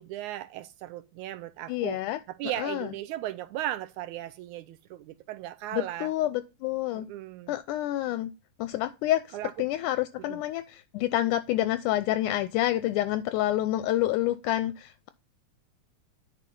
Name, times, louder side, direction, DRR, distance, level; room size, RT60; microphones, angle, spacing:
voice 1, 0.0-2.0 2.3-6.1 7.0-7.5 9.3-9.7 10.2-10.4, right 14 dB, 80° right, 1.8 m, -37 dB
voice 2, 1.7-2.2 2.6-2.9 5.7-7.1 7.5-8.3 8.6-15.1, left 14 dB, 80° left, 2.0 m, -28 dB
9.2 x 4.4 x 5.3 m
omnidirectional pair, 3.8 m